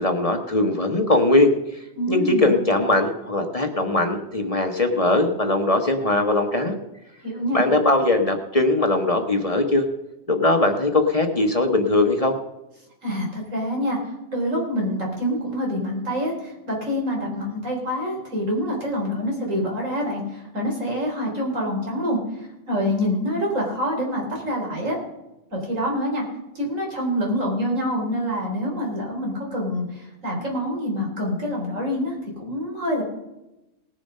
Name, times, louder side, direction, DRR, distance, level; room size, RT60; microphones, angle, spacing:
voice 1, 0.0-1.5 2.1-6.7 7.5-9.9 10.3-12.3, left 2 dB, 30° left, 4 dB, 1.1 m, -20 dB
voice 2, 2.0-2.6 7.2-7.6 13.0-22.2 22.7-25.0 25.5-26.2 26.6-33.0, equal, 85° right, -2 dB, 4.1 m, -26 dB
19.0 x 7.0 x 5.5 m, 0.95 s
omnidirectional pair, 1.3 m